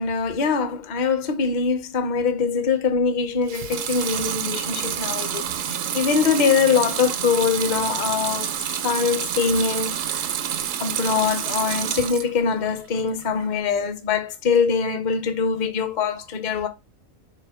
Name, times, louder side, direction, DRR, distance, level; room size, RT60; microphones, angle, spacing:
voice 1, 0.0-8.5 8.8-10.2 10.8-16.7, left 5 dB, 45° left, 0.6 m, -23 dB
Water tap faucet / Sink (filling or washing) / Liquid, 3.4-12.4 12.8-13.5, right 9 dB, 80° right, 0.9 m, -28 dB
3.6 x 2.9 x 4.7 m
omnidirectional pair, 1.3 m